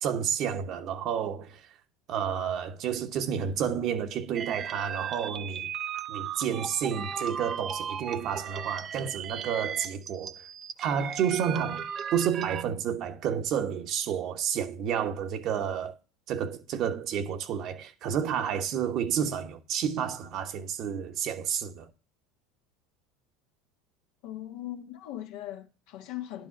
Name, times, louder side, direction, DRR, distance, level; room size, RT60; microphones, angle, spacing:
voice 1, 0.0-1.6 2.1-5.7 6.1-10.3 10.8-15.9 16.3-21.9, right 8 dB, 55° right, 1.3 m, -30 dB
sound 1, 4.3-12.6, right 8 dB, 35° right, 0.7 m, -36 dB
voice 2, 24.2-26.5, left 13 dB, 65° left, 1.5 m, -39 dB
10.5 x 5.1 x 5.8 m
hypercardioid pair, 90°, 0 cm